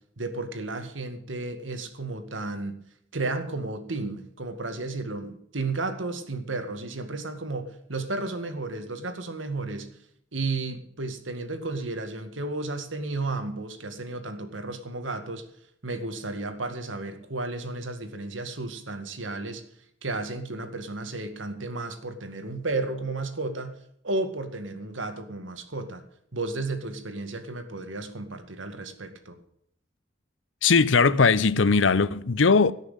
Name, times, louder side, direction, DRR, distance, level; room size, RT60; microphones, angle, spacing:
voice 1, 0.2-2.8 3.1-9.9 10.3-15.5 15.8-19.6 20.0-23.8 24.0-26.0 26.3-29.4, right 2 dB, 85° right, 2.0 m, -33 dB
voice 2, 30.6-32.7, left 4 dB, 75° left, 0.7 m, -19 dB
17.5 x 6.6 x 8.3 m
head